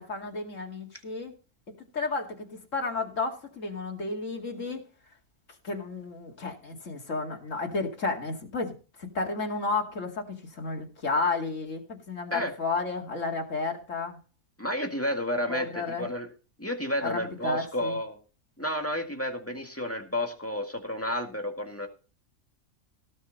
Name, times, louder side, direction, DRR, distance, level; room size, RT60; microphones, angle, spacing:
voice 1, 0.0-1.3 1.9-4.8 5.6-8.7 9.0-14.2 15.5-16.1 17.0-18.0, left 3 dB, 60° left, 2 dB, 2.7 m, -32 dB
voice 2, 14.6-16.3 16.6-18.2 18.6-21.9, equal, 10° left, 3 dB, 1.9 m, -31 dB
17.0 x 6.8 x 4.1 m, 0.34 s
omnidirectional pair, 1.5 m